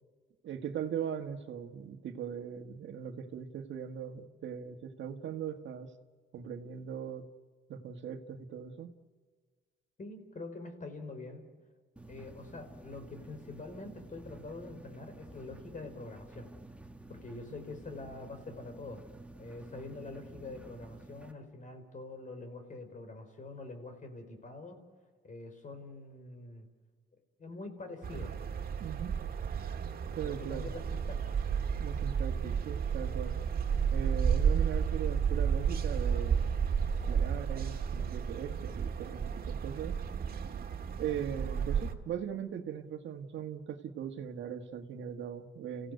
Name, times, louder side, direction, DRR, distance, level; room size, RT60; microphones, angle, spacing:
voice 1, 0.4-5.9 6.3-7.2 7.7-8.9 28.8-29.1 30.2-30.7 31.8-33.3 33.9-36.6 37.1-40.0 40.4-40.7 41.0-45.9, right 8 dB, 70° right, 7 dB, 1.6 m, -39 dB
voice 2, 10.0-11.4 12.1-16.5 17.1-19.0 19.3-24.8 25.2-26.7 27.4-28.3 30.2-31.2, left 3 dB, 40° left, 7 dB, 4.5 m, -45 dB
sound 1, 12.0-21.3, right 2 dB, 5° right, 2.0 m, -51 dB
sound 2, 28.0-41.9, right 7 dB, 50° right, 2.0 m, -32 dB
29.5 x 16.0 x 8.2 m, 1.5 s
cardioid pair, 90°, 20 cm